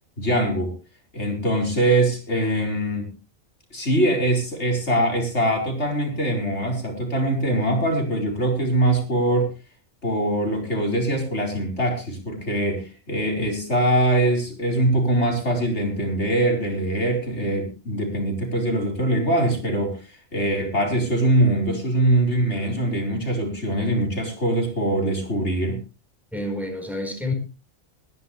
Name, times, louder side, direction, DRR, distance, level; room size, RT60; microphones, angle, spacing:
voice 1, 0.2-0.7 1.1-3.1 3.7-9.5 10.0-25.8, right 1 dB, 90° left, 2 dB, 5.0 m, -23 dB
voice 2, 26.3-27.3, left 1 dB, ahead, 3 dB, 4.6 m, -28 dB
21.0 x 11.5 x 3.3 m, 0.31 s
omnidirectional pair, 1.1 m